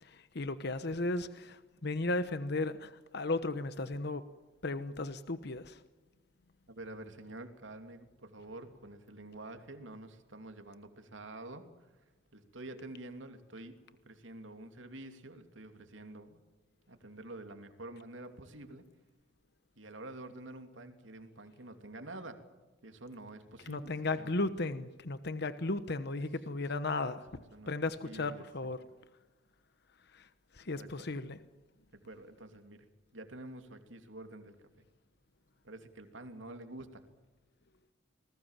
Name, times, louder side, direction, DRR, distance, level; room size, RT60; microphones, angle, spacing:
voice 1, 0.0-4.2 4.6-5.8 23.7-27.2 27.7-28.8 30.1-30.3 30.5-31.4, left 2 dB, 60° left, 12 dB, 1.0 m, -35 dB
voice 2, 6.7-12.0 12.3-13.8 14.1-16.4 16.9-18.9 19.8-22.5 22.8-24.3 26.2-26.3 27.3-27.7 28.0-28.5 30.7-31.1 31.9-32.9 33.1-34.9 35.6-37.0, right 2 dB, 80° right, 7 dB, 2.9 m, -48 dB
27.5 x 20.5 x 7.4 m, 1.2 s
head